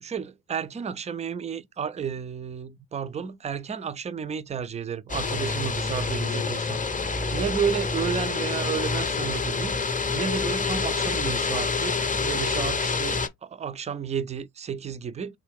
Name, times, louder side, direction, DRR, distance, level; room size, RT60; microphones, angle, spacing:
voice 1, 0.0-15.4, right 7 dB, 15° right, 0.3 m, -32 dB
sound 1, 5.1-13.3, left 4 dB, 15° left, 0.6 m, -27 dB
3.7 x 2.3 x 3.5 m
hypercardioid pair, 55°, 48 cm